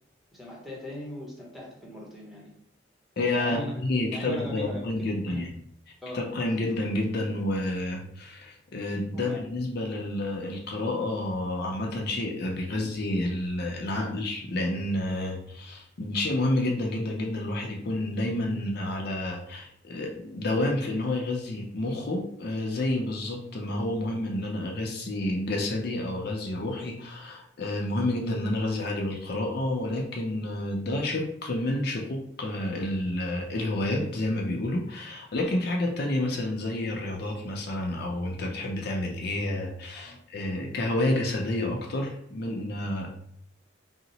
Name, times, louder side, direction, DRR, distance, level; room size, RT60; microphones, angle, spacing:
voice 1, 0.3-2.5 3.3-5.6 6.0-6.2 9.1-9.4 12.7-12.8 39.9-40.2, equal, ahead, -5 dB, 0.8 m, -40 dB
voice 2, 3.2-5.5 6.1-43.1, left 1 dB, 55° left, 0 dB, 0.5 m, -29 dB
2.8 x 2.0 x 4.0 m, 0.68 s
head